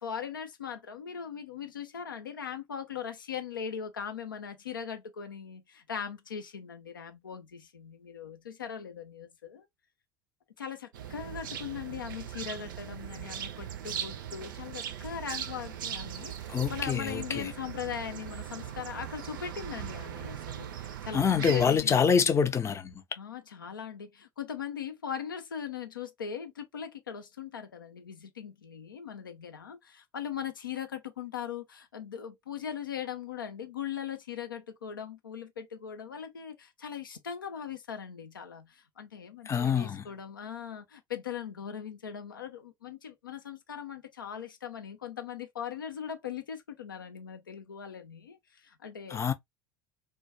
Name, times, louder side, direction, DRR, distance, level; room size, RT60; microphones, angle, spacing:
voice 1, 0.0-9.7 10.6-22.3 23.2-49.2, left 8 dB, 90° left, 0.4 m, -40 dB
sound 1, 10.9-21.7, right 9 dB, 75° right, 0.4 m, -39 dB
voice 2, 16.5-17.5 21.1-22.9 39.5-40.1 49.1-49.3, left 6 dB, 25° left, 0.5 m, -26 dB
2.2 x 2.2 x 2.6 m
hypercardioid pair, 70°, 11 cm